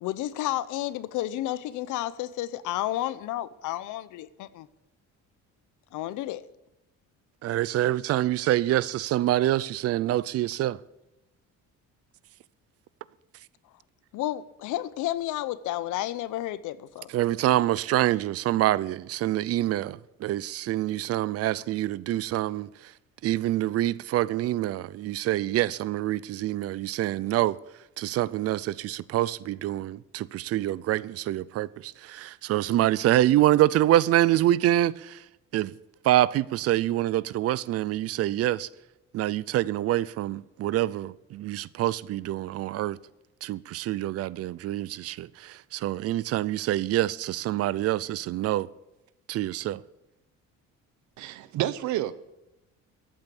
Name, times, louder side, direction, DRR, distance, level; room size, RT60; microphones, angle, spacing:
voice 1, 0.0-4.7 5.9-6.4 14.1-17.1, left 14 dB, 85° left, 0.8 m, -31 dB
voice 2, 7.4-10.8 17.1-22.7 23.2-27.6 28.0-35.2 35.5-35.7 36.0-38.7 39.1-43.0 43.4-48.7 49.3-49.8, right 14 dB, 55° right, 0.5 m, -26 dB
voice 3, 51.2-52.1, right 13 dB, 75° right, 0.9 m, -29 dB
14.0 x 8.9 x 7.0 m
cardioid pair, 160°, 30 cm